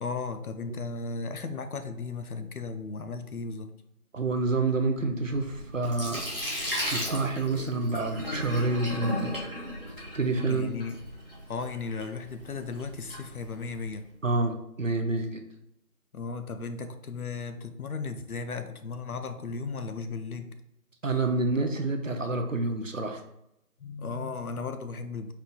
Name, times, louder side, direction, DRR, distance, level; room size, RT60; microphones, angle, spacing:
voice 1, 0.0-3.7 10.4-11.0 11.5-14.1 16.1-20.6 23.8-25.3, left 4 dB, 70° left, 8 dB, 0.6 m, -35 dB
voice 2, 4.1-6.2 6.9-9.3 10.1-10.7 14.2-15.4 21.0-23.2, right 2 dB, 60° right, 5 dB, 0.6 m, -28 dB
Sink (filling or washing), 5.2-14.0, equal, 40° left, 1.0 m, -36 dB
4.3 x 2.4 x 3.8 m, 0.81 s
figure-of-eight pair, 175°, 45 cm